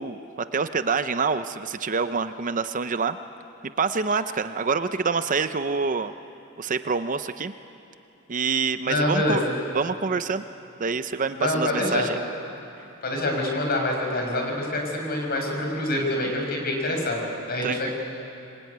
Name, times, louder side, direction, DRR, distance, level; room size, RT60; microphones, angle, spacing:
voice 1, 0.0-3.2 3.8-6.1 6.6-7.5 8.3-9.4 9.7-10.4 10.8-12.2 17.6-17.8, right 5 dB, 40° right, 11 dB, 0.6 m, -26 dB
voice 2, 8.8-9.5 11.4-12.1 13.0-17.9, left 1 dB, 45° left, 1 dB, 5.7 m, -26 dB
25.5 x 22.0 x 9.4 m, 2.8 s
head